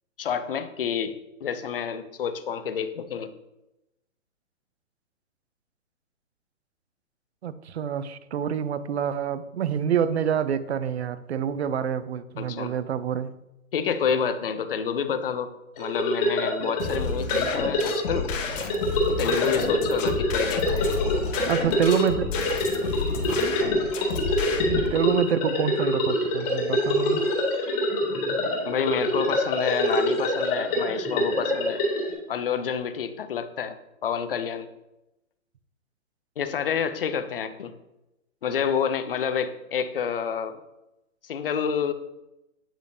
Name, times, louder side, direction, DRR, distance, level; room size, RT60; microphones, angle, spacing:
voice 1, 0.2-1.1 1.4-3.3 12.4-12.7 13.7-18.3 19.1-21.2 28.7-31.8 32.3-34.7 36.4-37.7 38.4-40.6 41.2-41.9, left 7 dB, 45° left, 0.5 m, -28 dB
voice 2, 7.4-13.3 21.5-22.3 24.7-27.2, right 8 dB, 55° right, 0.5 m, -27 dB
sound 1, 15.8-32.1, left 1 dB, 30° left, 2.1 m, -26 dB
sound 2, 16.8-24.9, left 4 dB, 65° left, 1.2 m, -30 dB
8.8 x 5.0 x 2.6 m
hypercardioid pair, 165°, 41 cm